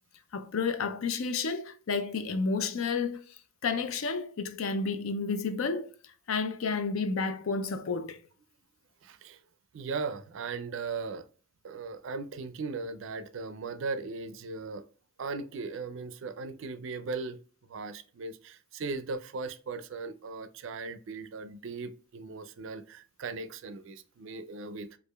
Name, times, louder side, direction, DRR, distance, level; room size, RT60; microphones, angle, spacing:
voice 1, 0.3-3.4 3.6-5.9 6.3-8.2, left 4 dB, 70° left, 0.4 m, -31 dB
voice 2, 9.0-9.4 9.7-11.2 11.6-14.8 15.2-17.4 17.7-24.9, right 4 dB, 60° right, 0.4 m, -38 dB
4.7 x 2.4 x 2.2 m
head